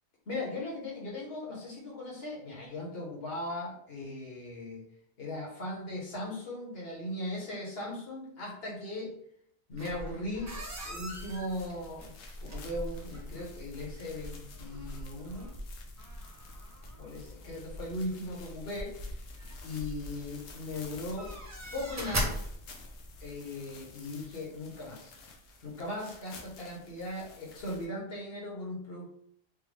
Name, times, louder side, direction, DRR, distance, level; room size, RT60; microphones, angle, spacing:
voice 1, 0.3-4.8 5.2-9.1 9.7-10.6 10.8-12.1 12.4-15.5 17.0-18.9 19.6-21.3 21.7-22.3 23.2-25.2 25.6-29.1, left 1 dB, 60° left, -3 dB, 1.3 m, -38 dB
sound 1, 9.7-23.3, equal, 25° right, 0.3 m, -41 dB
sound 2, 11.1-27.9, left 4 dB, 75° left, 0.9 m, -53 dB
3.5 x 2.2 x 3.3 m, 0.67 s
omnidirectional pair, 1.2 m